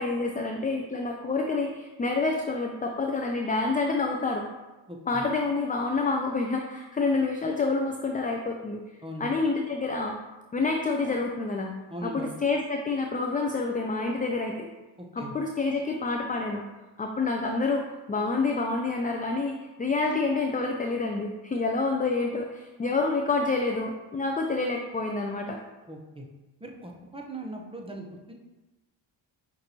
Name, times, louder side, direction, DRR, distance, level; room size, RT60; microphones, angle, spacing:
voice 1, 0.0-4.5 5.1-8.8 9.2-10.2 10.5-11.7 12.0-14.7 15.2-16.6 17.0-25.6, left 3 dB, 20° left, 2 dB, 0.4 m, -28 dB
voice 2, 4.9-5.2 9.0-9.3 11.9-12.3 15.0-15.3 25.9-26.2 26.6-28.3, right 1 dB, 10° right, 1 dB, 0.8 m, -39 dB
5.9 x 2.6 x 2.9 m, 1.1 s
supercardioid pair, 55°, 47 cm